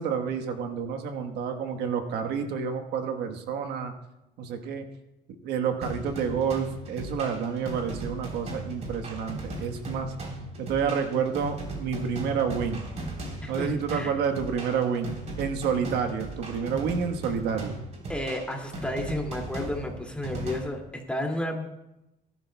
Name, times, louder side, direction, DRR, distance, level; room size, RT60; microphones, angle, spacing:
voice 1, 0.0-3.9 4.4-4.8 5.4-10.1 10.6-12.9 13.5-17.8, right 6 dB, 85° right, 5 dB, 1.3 m, -29 dB
sound 1, 5.8-20.6, right 1 dB, 40° right, 3.7 m, -37 dB
voice 2, 13.4-14.1 18.1-20.8 21.1-21.7, left 1 dB, 5° left, 0 dB, 2.4 m, -32 dB
19.5 x 12.0 x 2.3 m, 0.92 s
cardioid pair, 110°, 17 cm